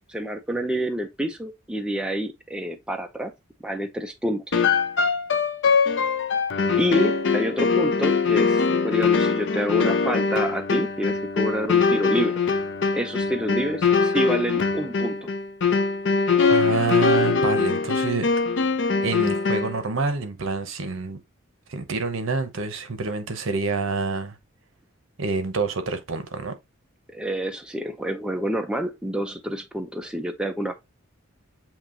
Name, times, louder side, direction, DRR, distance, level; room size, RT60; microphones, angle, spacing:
voice 1, 0.1-3.3 3.6-4.6 6.8-12.4 12.9-15.3 27.1-30.7, equal, 5° right, 0.4 m, -28 dB
sound 1, 4.5-19.8, left 5 dB, 60° left, 0.5 m, -22 dB
voice 2, 16.5-18.3 19.0-21.2 21.7-24.4 25.2-26.5, right 3 dB, 70° right, 0.8 m, -27 dB
7.3 x 2.9 x 2.5 m
head